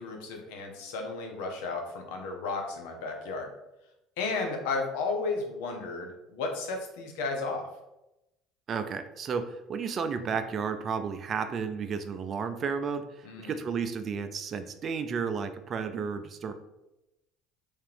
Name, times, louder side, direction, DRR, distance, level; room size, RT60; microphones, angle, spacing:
voice 1, 0.0-3.5 4.2-7.7 13.2-13.5, left 3 dB, 80° left, 3 dB, 0.7 m, -33 dB
voice 2, 8.7-16.5, right 6 dB, 45° right, 9 dB, 0.4 m, -32 dB
3.4 x 3.2 x 3.4 m, 0.92 s
supercardioid pair, 85°, 0 cm